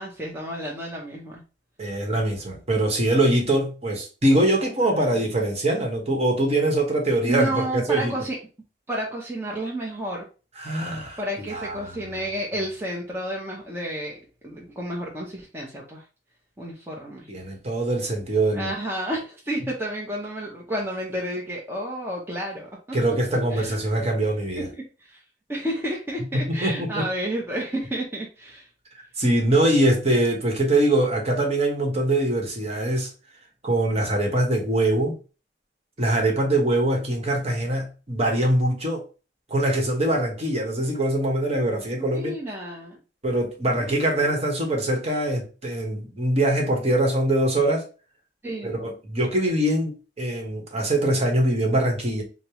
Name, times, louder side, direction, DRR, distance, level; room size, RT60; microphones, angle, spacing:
voice 1, 0.0-1.4 5.0-5.3 7.2-8.4 8.9-10.3 11.2-14.2 14.4-16.0 16.6-17.3 18.5-23.0 23.5-23.7 24.6-24.7 25.1-25.2 25.5-28.7 42.0-43.0 43.7-44.3 48.4-48.8, right 1 dB, 15° right, 0.7 m, -31 dB
voice 2, 1.8-8.1 10.6-12.2 17.3-18.7 22.9-24.7 26.3-27.1 29.2-33.1 33.6-35.2 36.0-39.0 39.5-42.4 43.2-47.9 48.6-52.2, right 1 dB, 35° right, 1.1 m, -23 dB
5.2 x 2.0 x 2.9 m
head